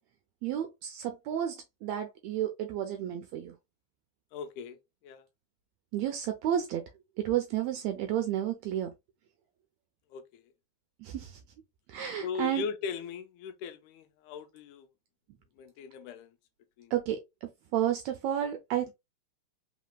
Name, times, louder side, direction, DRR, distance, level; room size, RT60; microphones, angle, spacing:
voice 1, 0.4-3.6 5.9-6.8 7.2-8.9 11.0-11.4 11.9-12.6 16.9-18.9, right 11 dB, 80° right, 1.6 m, -31 dB
voice 2, 4.3-4.8 5.0-5.3 10.1-10.4 12.2-14.9 15.6-16.3 16.8-16.9, left 6 dB, 85° left, 2.1 m, -39 dB
4.2 x 3.7 x 2.3 m
omnidirectional pair, 3.6 m